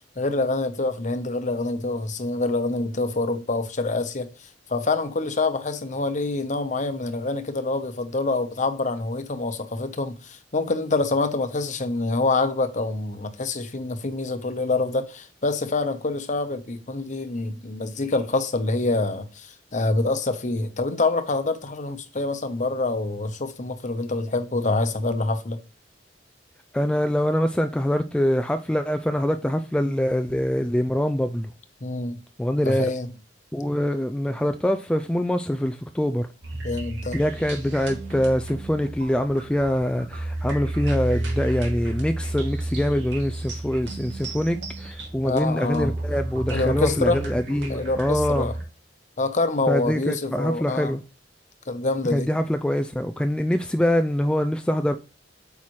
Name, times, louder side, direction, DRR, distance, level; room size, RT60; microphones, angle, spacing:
voice 1, 0.2-25.6 31.8-32.2 32.7-33.1 36.6-37.2 45.2-45.9 46.5-47.2 47.7-48.5 49.2-51.0 51.7-52.3, left 3 dB, 45° left, 1.0 m, -26 dB
voice 2, 26.7-31.5 32.4-32.9 33.5-36.3 37.1-48.5 49.7-51.0 52.1-55.0, equal, 5° left, 0.3 m, -24 dB
sound 1, 36.4-48.6, right 1 dB, 85° right, 2.3 m, -32 dB
8.5 x 5.6 x 3.2 m
head